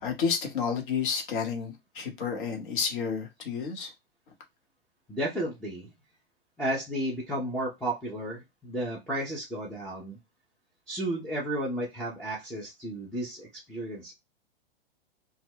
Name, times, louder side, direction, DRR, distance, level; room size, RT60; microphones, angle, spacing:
voice 1, 0.0-3.9, left 6 dB, 55° left, 0.9 m, -30 dB
voice 2, 5.1-5.9 6.6-10.2 10.9-14.1, right 1 dB, 5° left, 0.4 m, -33 dB
2.2 x 2.1 x 3.4 m
figure-of-eight pair, 105°, 31 cm